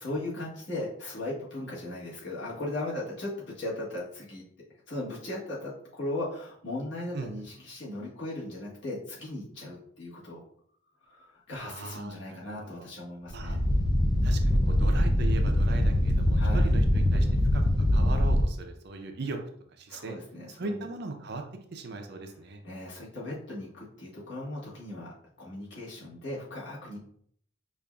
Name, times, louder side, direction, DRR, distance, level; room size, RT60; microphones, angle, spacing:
voice 1, 0.0-4.4 4.9-10.4 11.0-13.6 16.4-16.7 19.9-20.8 22.6-25.1 25.4-27.0, left 1 dB, 65° left, -5 dB, 1.4 m, -37 dB
voice 2, 11.6-12.9 13.3-13.6 14.2-17.3 17.5-19.4 19.8-20.2 20.6-21.4 21.7-22.6, right 3 dB, 55° right, 4 dB, 0.5 m, -39 dB
sound 1, 13.3-18.4, left 1 dB, 20° left, 0.3 m, -23 dB
5.1 x 2.5 x 2.3 m, 0.63 s
head